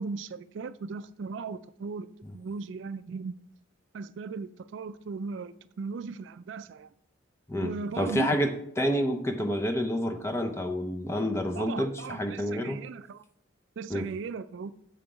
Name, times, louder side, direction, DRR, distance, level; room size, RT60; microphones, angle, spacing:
voice 1, 0.0-3.4 3.9-6.9 7.6-8.3 11.6-13.2 13.8-14.7, right 4 dB, 70° right, 0.3 m, -37 dB
voice 2, 7.5-12.8 13.9-14.1, equal, 15° left, 0.6 m, -29 dB
6.9 x 5.7 x 5.0 m
head